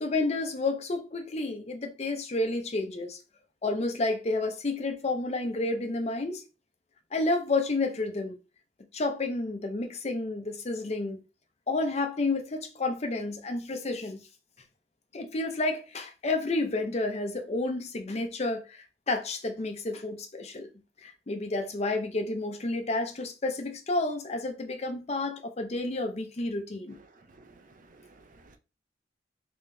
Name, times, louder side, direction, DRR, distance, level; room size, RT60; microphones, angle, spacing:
voice 1, 0.0-3.2 3.6-6.4 7.1-8.4 8.9-11.2 11.7-14.2 15.1-20.7 21.0-27.0, left 2 dB, 35° left, 0.6 m, -30 dB
voice 2, 26.9-28.6, right 3 dB, 45° right, 0.5 m, -56 dB
3.8 x 3.0 x 2.6 m
head